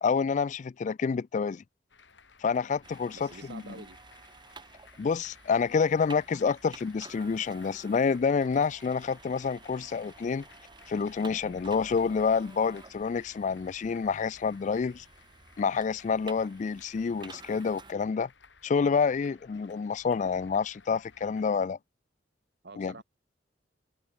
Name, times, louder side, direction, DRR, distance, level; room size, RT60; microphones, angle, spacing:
voice 1, 0.0-1.6 2.4-3.7 5.0-10.4 10.9-15.1 15.6-18.3 18.6-21.8 22.8-23.0, left 5 dB, 40° left, 0.3 m, -28 dB
sound 1, 1.9-21.6, left 5 dB, 85° left, 4.6 m, -58 dB
sound 2, 2.8-17.9, right 4 dB, 25° right, 1.2 m, -52 dB
voice 2, 3.1-4.0 22.6-23.0, right 3 dB, 65° right, 1.1 m, -47 dB
head